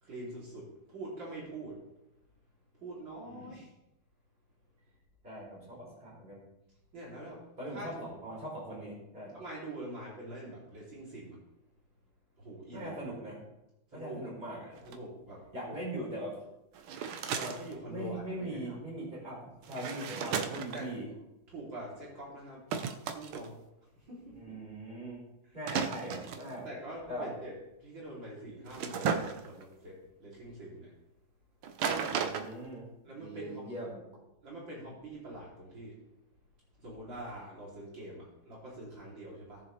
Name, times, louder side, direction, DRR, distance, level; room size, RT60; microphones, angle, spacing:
voice 1, 0.0-1.8 2.8-3.7 6.9-7.4 7.7-8.1 9.3-11.4 12.4-13.0 13.9-14.2 14.9-15.8 17.4-18.8 20.7-20.9 21.5-22.6 23.1-23.6 24.0-24.5 26.6-27.5 27.8-30.9 33.1-33.6 34.4-36.0 36.8-39.6, right 1 dB, 65° right, -5 dB, 3.6 m, -44 dB
voice 2, 3.3-3.6 5.2-6.4 7.6-9.4 12.7-13.4 13.9-14.8 15.5-16.4 17.9-21.1 24.3-25.2 25.5-26.7 27.1-27.3 31.9-32.9 33.2-34.0, right 1 dB, 25° right, -4 dB, 4.5 m, -41 dB
sound 1, 14.8-15.0 16.7-17.7 19.6-20.9 22.7-23.5 25.7-26.5 28.7-29.6 31.6-32.5, right 6 dB, 80° right, 1.7 m, -34 dB
18.5 x 7.2 x 3.2 m, 0.91 s
omnidirectional pair, 2.2 m